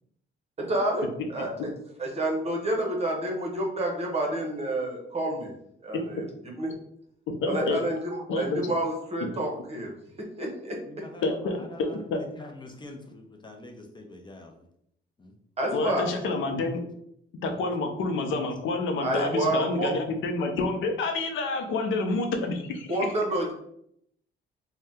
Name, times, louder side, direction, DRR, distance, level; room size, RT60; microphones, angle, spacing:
voice 1, 0.6-1.7 2.0-5.5 5.8-6.2 6.6-6.7 7.4-9.9 10.4-10.8 15.6-16.0 19.0-19.9 22.9-23.5, right 1 dB, 30° right, 1 dB, 0.9 m, -29 dB
voice 2, 7.4-7.8 8.3-8.7 11.2-11.5 12.1-12.2 15.7-16.8 17.4-23.0, left 3 dB, 80° left, 4 dB, 0.6 m, -28 dB
voice 3, 10.9-14.5 15.2-15.3 15.8-16.0 17.5-17.6, left 2 dB, 25° left, 3 dB, 0.5 m, -45 dB
2.6 x 2.2 x 3.5 m, 0.71 s
cardioid pair, 90°, 20 cm